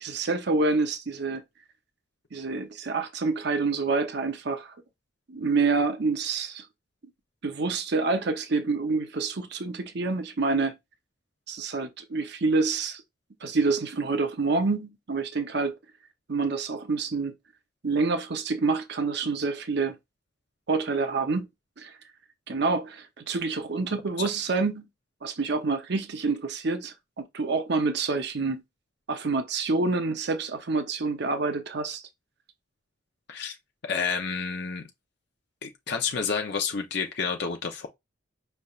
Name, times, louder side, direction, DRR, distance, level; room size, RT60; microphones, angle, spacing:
voice 1, 0.0-1.4 2.3-4.7 5.3-6.7 7.4-10.7 11.5-13.0 13.4-15.8 16.3-17.3 17.8-20.0 20.7-21.5 21.8-21.9 22.5-24.9 25.2-26.9 27.3-28.6 29.1-32.0, right 3 dB, 60° right, 0.7 m, -27 dB
voice 2, 33.9-34.8 35.6-37.9, left 5 dB, 60° left, 0.7 m, -29 dB
5.5 x 3.3 x 2.4 m
head